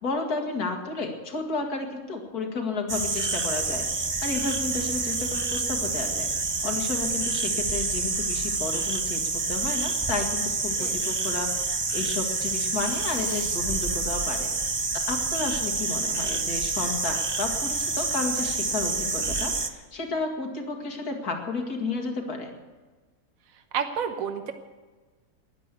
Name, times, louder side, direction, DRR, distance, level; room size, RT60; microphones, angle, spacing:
voice 1, 0.0-3.9 4.2-6.3 6.6-14.5 15.1-22.5, left 3 dB, 80° left, 3 dB, 2.5 m, -32 dB
sound 1, 2.9-19.7, right 3 dB, 30° right, 0.5 m, -28 dB
voice 2, 23.7-24.5, right 7 dB, 65° right, 7 dB, 1.5 m, -29 dB
14.0 x 10.5 x 8.2 m, 1.3 s
omnidirectional pair, 1.6 m